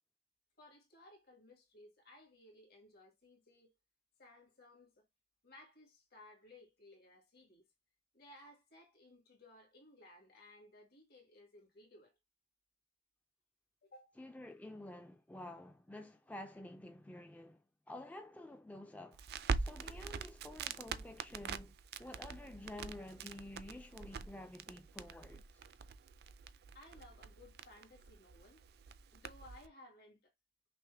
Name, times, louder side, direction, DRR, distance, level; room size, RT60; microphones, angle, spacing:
voice 1, 0.6-3.8 4.2-5.1 5.4-7.6 8.1-12.2 13.8-14.2 26.7-28.6 29.1-30.3, left 1 dB, 65° left, 2.0 m, -60 dB
voice 2, 14.2-19.2 19.6-25.6, left 1 dB, 10° left, 0.3 m, -50 dB
Crackle, 19.1-29.7, right 5 dB, 65° right, 0.4 m, -44 dB
5.9 x 2.0 x 3.4 m
head